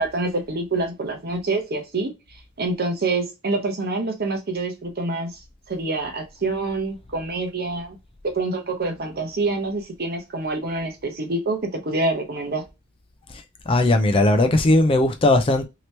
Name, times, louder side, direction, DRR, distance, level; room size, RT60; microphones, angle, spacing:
voice 1, 0.0-2.1 2.6-5.4 5.7-8.0 8.2-12.6, right 2 dB, 45° right, 0.8 m, -26 dB
voice 2, 13.7-15.7, left 2 dB, 25° left, 0.4 m, -18 dB
2.9 x 2.9 x 3.1 m
head